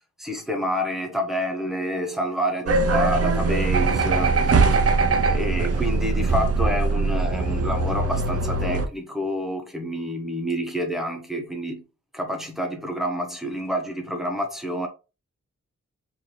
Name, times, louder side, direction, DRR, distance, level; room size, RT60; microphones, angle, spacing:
voice 1, 0.2-4.9 5.2-11.8 12.1-14.9, equal, ahead, 1.1 m, -28 dB
sound 1, 2.7-8.9, right 3 dB, 55° right, 0.6 m, -21 dB
4.7 x 2.8 x 3.2 m
wide cardioid pair, 110°, 29 cm